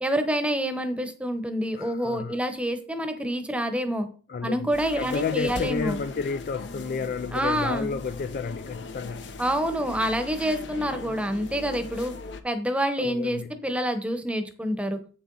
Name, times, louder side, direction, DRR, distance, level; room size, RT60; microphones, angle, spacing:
voice 1, 0.0-4.1 4.4-6.0 7.3-8.0 9.4-12.1 12.4-15.0, equal, 5° right, 0.9 m, -27 dB
voice 2, 1.8-2.4 4.3-9.4 13.0-13.5, left 5 dB, 45° left, 0.3 m, -31 dB
Office ambience, 4.7-12.4, left 3 dB, 60° left, 0.8 m, -39 dB
8.1 x 6.7 x 3.9 m
head